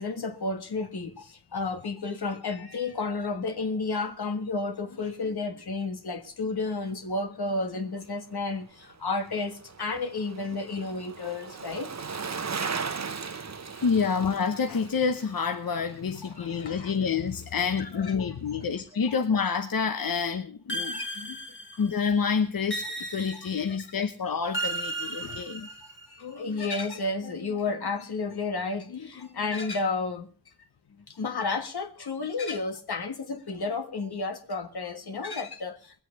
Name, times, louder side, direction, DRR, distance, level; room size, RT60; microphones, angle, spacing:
voice 1, 0.0-11.9 13.7-14.0 16.2-16.9 17.8-18.6 20.8-21.4 23.7-23.8 26.1-30.3 31.1-36.0, left 3 dB, 80° left, 1.7 m, -32 dB
Bicycle, 8.7-17.1 17.4-17.5, right 5 dB, 45° right, 0.9 m, -38 dB
voice 2, 13.8-20.9 21.8-25.7, left 6 dB, 65° left, 0.9 m, -28 dB
sound 1, 20.7-22.0 22.7-23.8 24.5-26.1, right 2 dB, 30° left, 2.2 m, -35 dB
20.5 x 7.9 x 5.8 m
cardioid pair, 45°, 38 cm